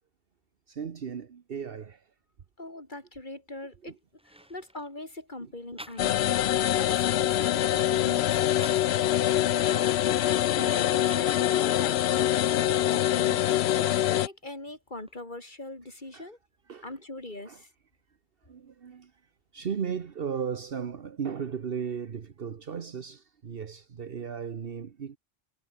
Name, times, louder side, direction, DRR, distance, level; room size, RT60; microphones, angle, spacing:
voice 1, 0.7-2.1 3.8-4.0 4.4-4.5 5.4-5.5 9.2-10.2 12.2-12.3 16.1-16.3 16.7-16.9 17.5-17.6 18.4-19.1 19.5-25.2, right 7 dB, 65° right, 1.2 m, -36 dB
voice 2, 2.6-4.0 4.2-6.4 6.8-8.4 9.6-10.1 10.5-16.4 16.8-17.7, left 2 dB, 50° left, 4.2 m, -42 dB
sound 1, 3.7-3.8 4.2-4.9 5.8-6.4 6.8-9.0 9.5-11.4 12.0-14.1 14.4-15.2, right 1 dB, 5° right, 1.5 m, -52 dB
sound 2, 6.0-14.3, left 12 dB, 90° left, 0.8 m, -24 dB
omnidirectional pair, 1.0 m